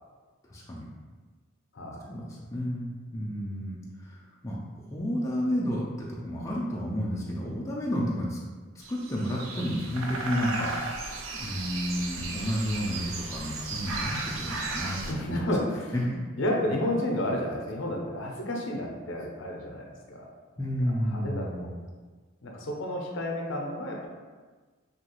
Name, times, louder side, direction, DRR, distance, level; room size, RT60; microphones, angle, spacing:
voice 1, 0.5-0.8 2.1-4.6 4.9-8.4 8.9-11.0 11.3-15.5 15.9-16.0 20.6-21.7, equal, 15° left, -5 dB, 0.3 m, -31 dB
voice 2, 1.7-2.1 15.1-15.9 16.4-20.3 20.8-21.7 22.4-24.1, left 1 dB, 65° left, 0 dB, 0.5 m, -31 dB
sound 1, 8.8-15.1, right 3 dB, 80° right, 0.4 m, -35 dB
2.8 x 2.3 x 2.9 m, 1.4 s
head